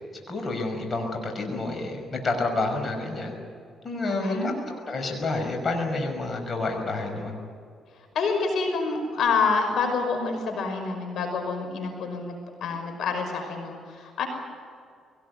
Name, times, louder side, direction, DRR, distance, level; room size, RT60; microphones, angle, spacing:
voice 1, 0.3-3.3 3.8-7.4, left 3 dB, 40° left, 3 dB, 5.5 m, -29 dB
voice 2, 4.0-4.6 8.1-14.3, left 4 dB, 70° left, 4 dB, 5.5 m, -27 dB
22.0 x 19.0 x 9.5 m, 2.3 s
cardioid pair, 90°, 0 cm